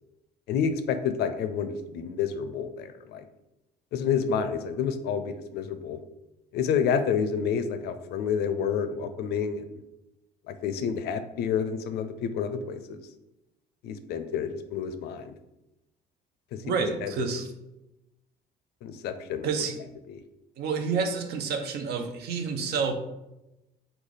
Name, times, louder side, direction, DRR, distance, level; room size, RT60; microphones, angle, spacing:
voice 1, 0.5-3.3 3.9-6.0 6.5-9.6 10.5-13.0 13.8-15.3 16.5-16.6 17.0-17.3 18.8-19.7 20.1-20.2, left 7 dB, 70° left, 10 dB, 0.4 m, -29 dB
voice 2, 16.6-17.4 19.4-19.8 20.6-22.9, right 5 dB, 70° right, 6 dB, 0.6 m, -29 dB
3.2 x 2.3 x 3.8 m, 0.93 s
cardioid pair, 110°, 17 cm